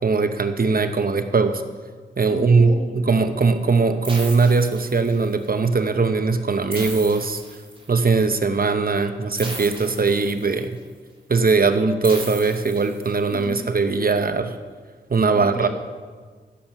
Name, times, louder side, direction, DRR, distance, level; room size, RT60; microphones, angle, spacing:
voice 1, 0.0-1.6 2.2-7.4 7.9-10.8 11.3-14.5 15.1-15.7, right 4 dB, 50° right, 9 dB, 0.9 m, -20 dB
voice 2, 2.3-3.1 13.3-13.7 15.3-15.7, left 1 dB, 40° left, 4 dB, 1.8 m, -34 dB
sound 1, 4.0-5.4 6.7-8.1 9.4-10.7 12.0-13.4, right 2 dB, 30° right, 2.9 m, -36 dB
15.5 x 7.4 x 5.9 m, 1.5 s
cardioid pair, 55°, 19 cm